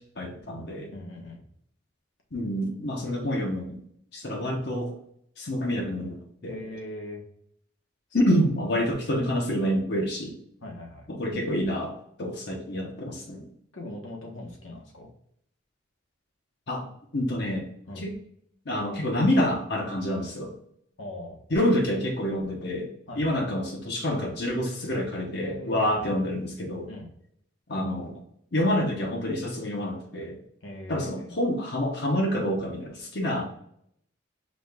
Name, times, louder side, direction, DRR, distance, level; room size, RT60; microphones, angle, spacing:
voice 1, 0.0-0.9 2.3-3.8 4.1-4.9 5.4-6.6 8.1-10.4 11.1-13.5 16.7-16.9 17.1-17.7 17.9-18.1 18.6-20.5 21.5-26.9 27.7-28.2 28.5-30.4 30.9-33.4, equal, 55° left, 0 dB, 0.9 m, -27 dB
voice 2, 0.9-1.5 6.5-7.2 8.3-8.4 8.9-9.0 10.6-11.1 13.7-15.1 17.9-18.1 21.0-21.4 23.1-23.4 25.4-26.0 26.9-27.1 28.1-28.2 30.6-31.3 33.3-33.4, left 1 dB, 75° left, 0 dB, 1.3 m, -40 dB
4.9 x 2.4 x 3.6 m, 0.69 s
head